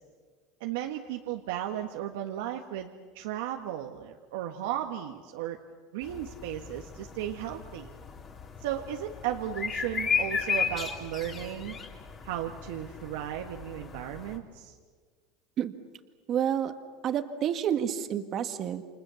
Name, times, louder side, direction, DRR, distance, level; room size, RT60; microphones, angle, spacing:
voice 1, 0.6-5.6 5.9-7.9 8.6-11.8 12.2-14.7, right 11 dB, 85° right, 3 dB, 1.6 m, -35 dB
sound 1, 6.0-14.4, left 6 dB, 25° left, 3.2 m, -35 dB
voice 2, 16.3-16.7 17.0-18.8, right 9 dB, 35° right, 8 dB, 1.6 m, -29 dB
29.5 x 27.0 x 7.1 m, 1.5 s
supercardioid pair, 150°, 0 cm